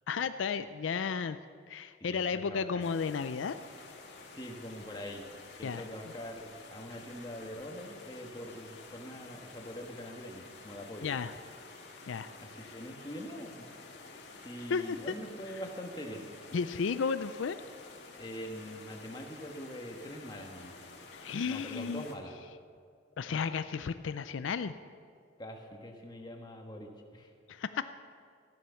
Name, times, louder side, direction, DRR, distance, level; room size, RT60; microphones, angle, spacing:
voice 1, 0.1-1.4 1.7-3.6 5.6-5.8 11.0-11.3 12.1-12.3 14.7-15.0 16.5-17.6 21.1-22.0 23.2-24.8 27.5-27.9, left 5 dB, 80° left, 12 dB, 0.4 m, -33 dB
voice 2, 2.0-2.8 4.3-5.3 5.6-11.1 12.4-13.7 14.4-16.5 18.2-20.7 21.4-22.4 25.4-27.3, equal, 20° left, 2 dB, 1.4 m, -44 dB
sound 1, 2.8-22.2, left 3 dB, 60° left, 2.0 m, -51 dB
14.0 x 10.0 x 7.0 m, 2.2 s
head